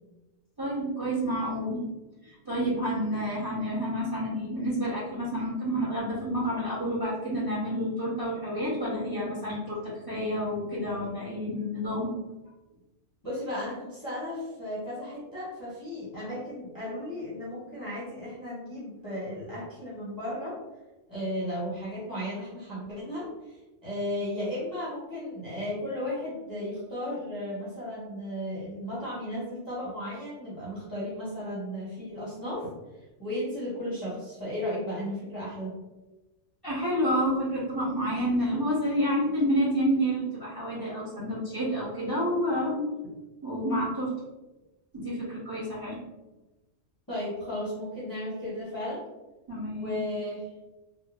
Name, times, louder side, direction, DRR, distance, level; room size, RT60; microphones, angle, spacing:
voice 1, 0.6-1.8 2.2-12.1 36.6-42.8 43.4-44.1 44.9-46.0 49.5-50.0, equal, 20° right, -10 dB, 0.9 m, -29 dB
voice 2, 13.2-20.6 21.1-32.7 33.2-35.7 47.1-49.0 49.7-50.4, left 1 dB, 20° left, -10 dB, 0.8 m, -35 dB
3.0 x 2.1 x 2.5 m, 1.1 s
omnidirectional pair, 1.2 m